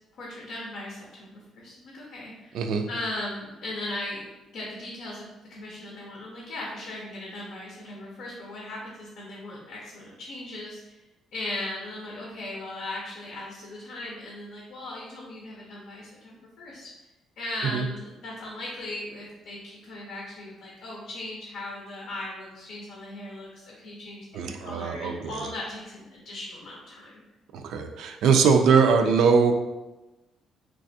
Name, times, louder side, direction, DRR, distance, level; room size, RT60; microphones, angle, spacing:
voice 1, 0.2-2.6 2.9-4.3 4.5-11.0 11.3-16.9 17.4-27.2, left 1 dB, 75° left, -3 dB, 0.6 m, -38 dB
voice 2, 2.5-2.9 17.7-17.9 24.3-25.5 27.5-29.5, right 5 dB, 75° right, 5 dB, 0.3 m, -21 dB
3.3 x 2.4 x 2.6 m, 1.1 s
cardioid pair, 105°, 0 cm